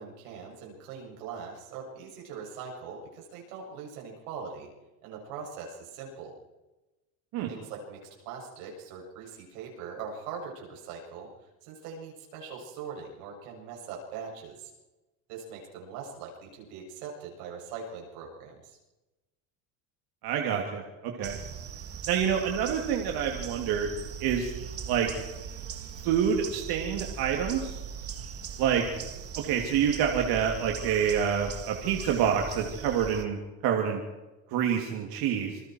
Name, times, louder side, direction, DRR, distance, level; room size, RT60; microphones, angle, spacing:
voice 1, 0.0-4.7 5.0-6.3 7.5-11.3 11.6-14.7 15.3-18.8, right 6 dB, 90° right, -1 dB, 7.4 m, -41 dB
voice 2, 20.2-21.4 22.1-23.9 24.2-24.5 24.9-25.1 26.0-27.8 28.6-28.8 29.4-34.0 34.5-35.6, right 8 dB, 55° right, 2 dB, 2.9 m, -27 dB
sound 1, 21.2-33.3, right 7 dB, 30° right, 1.9 m, -40 dB
28.0 x 22.0 x 4.6 m, 1.1 s
cardioid pair, 145°, 43 cm